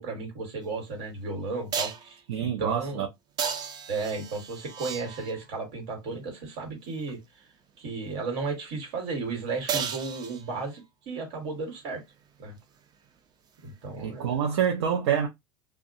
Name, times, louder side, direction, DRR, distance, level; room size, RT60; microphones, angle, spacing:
voice 1, 0.0-3.1 3.9-7.5 7.8-12.0 12.4-12.6 13.6-14.4, right 4 dB, 65° right, 1.5 m, -34 dB
sound 1, 0.6-0.7 1.7-2.1 3.4-5.5 9.7-10.8 14.6-14.7, right 7 dB, 30° right, 0.4 m, -34 dB
voice 2, 2.3-3.1 14.0-15.3, right 8 dB, 85° right, 0.5 m, -26 dB
2.3 x 2.1 x 2.6 m
supercardioid pair, 125°, 14 cm